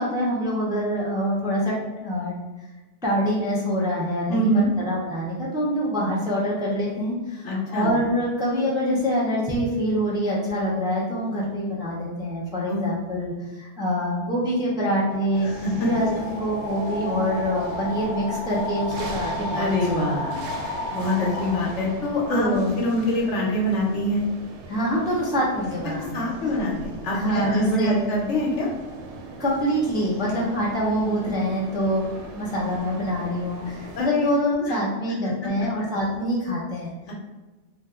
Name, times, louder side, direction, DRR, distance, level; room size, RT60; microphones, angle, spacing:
voice 1, 0.0-1.7 2.0-2.3 3.0-15.5 15.8-20.0 22.3-22.8 24.7-26.3 27.1-28.0 29.4-32.1 32.4-36.9, equal, 5° right, -5 dB, 0.4 m, -25 dB
voice 2, 4.3-4.7 7.4-7.9 12.7-12.8 15.4-15.9 19.5-20.3 20.9-22.5 22.8-24.3 26.1-28.7 34.0-34.3 34.6-34.8 35.2-35.5 37.1-37.2, left 1 dB, 75° left, -3 dB, 1.1 m, -25 dB
sound 1, 14.5-22.2, left 1 dB, 55° left, 0.6 m, -33 dB
sound 2, 15.3-34.0, right 3 dB, 75° right, 0.8 m, -40 dB
2.8 x 2.2 x 3.6 m, 1.1 s
omnidirectional pair, 1.2 m